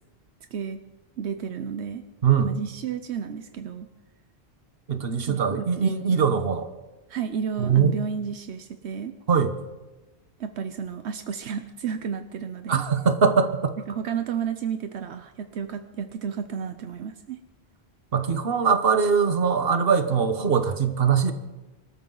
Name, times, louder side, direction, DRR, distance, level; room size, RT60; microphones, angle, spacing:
voice 1, 1.2-2.0 2.4-3.9 5.3-5.9 7.1-9.1 10.4-12.8 13.9-17.4, right 7 dB, 80° right, 8 dB, 1.0 m, -32 dB
voice 2, 2.2-2.5 4.9-6.7 7.6-8.0 9.3-9.5 12.7-13.7 18.1-21.3, right 6 dB, 60° right, 8 dB, 1.3 m, -22 dB
25.0 x 13.5 x 3.9 m, 1.1 s
omnidirectional pair, 1.1 m